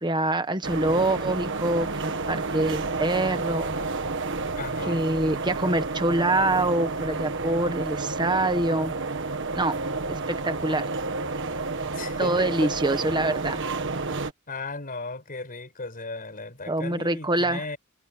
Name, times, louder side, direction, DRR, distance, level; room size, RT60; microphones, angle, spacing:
voice 1, 0.0-3.7 4.9-8.9 9.5-9.8 10.1-10.9 12.2-13.6 16.7-17.7, right 2 dB, 20° right, 1.4 m, -25 dB
sound 1, 0.6-14.3, right 3 dB, 55° right, 1.5 m, -30 dB
voice 2, 4.5-5.1 11.9-12.7 14.5-17.8, left 3 dB, 40° left, 5.3 m, -36 dB
head